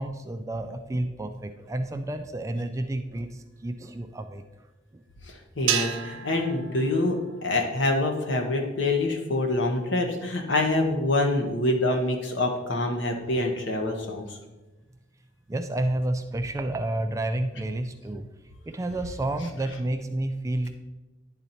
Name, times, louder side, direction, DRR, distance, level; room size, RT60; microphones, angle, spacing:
voice 1, 0.0-4.4 15.5-18.3 18.7-20.7, right 1 dB, 15° right, 8 dB, 0.3 m, -30 dB
voice 2, 5.3-14.4, left 2 dB, 65° left, 3 dB, 1.1 m, -26 dB
sound 1, 5.7-8.1, right 10 dB, 85° right, 0.5 m, -32 dB
10.0 x 4.0 x 4.3 m, 1.1 s
head